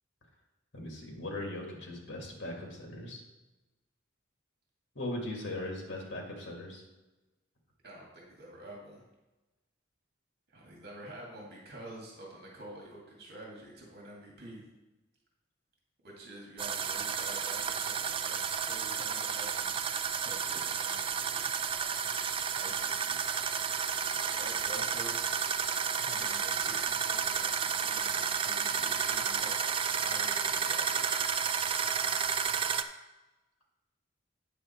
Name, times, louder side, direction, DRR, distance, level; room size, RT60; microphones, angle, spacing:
voice 1, 0.7-3.2 5.0-6.8, left 1 dB, 65° left, 0 dB, 2.1 m, -39 dB
voice 2, 7.8-9.0 10.5-14.6 16.0-19.8 20.2-21.5 22.5-23.2 24.1-25.1 25.9-29.6 29.9-31.2, right 1 dB, 55° right, -3 dB, 2.2 m, -48 dB
sound 1, 16.6-32.8, right 7 dB, 25° right, 0.4 m, -31 dB
8.9 x 6.5 x 4.4 m, 1.1 s
head